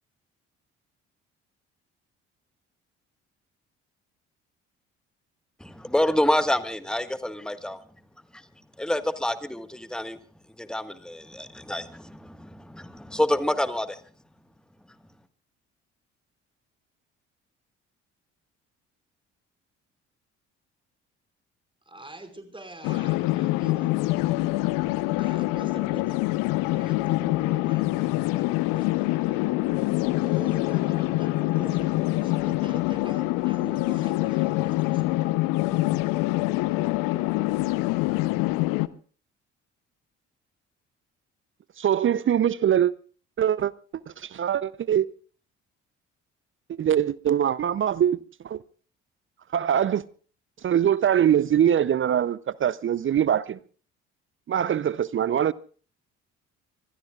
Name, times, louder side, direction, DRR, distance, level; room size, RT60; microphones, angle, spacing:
voice 1, 5.6-7.8 8.3-8.4 8.8-10.2 10.6-14.0, left 1 dB, ahead, 1.5 m, -27 dB
voice 2, 21.9-24.0 25.2-26.2 26.5-29.5 30.2-35.4, right 2 dB, 15° right, 5.3 m, -45 dB
sound 1, 22.8-38.9, left 19 dB, 70° left, 0.8 m, -25 dB
voice 3, 41.8-42.9 43.4-43.7 44.1-45.1 46.7-48.6 49.5-50.0 50.6-53.6 54.5-55.5, right 9 dB, 35° right, 0.6 m, -23 dB
25.5 x 20.5 x 2.4 m
hypercardioid pair, 50°, 35 cm